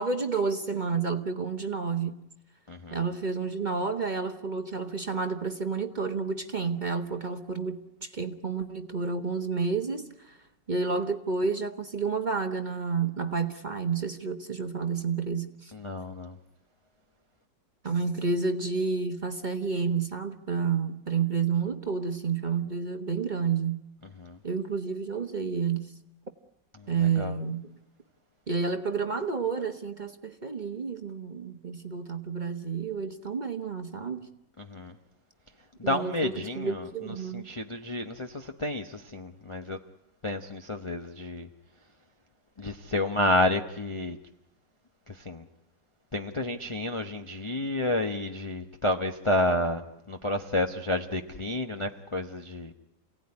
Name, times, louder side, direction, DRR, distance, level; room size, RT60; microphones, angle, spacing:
voice 1, 0.0-2.2 2.9-10.4 10.7-15.7 17.8-23.8 24.4-25.9 26.9-27.7 28.5-34.3 35.8-37.5, right 5 dB, 30° right, 1.1 m, -30 dB
voice 2, 15.7-16.3 24.2-24.4 27.2-27.3 34.6-34.9 35.8-36.9 37.3-39.8 40.2-41.5 42.6-44.2 45.1-45.4 46.1-52.7, left 1 dB, 25° left, 0.7 m, -30 dB
28.5 x 17.5 x 9.7 m
omnidirectional pair, 1.9 m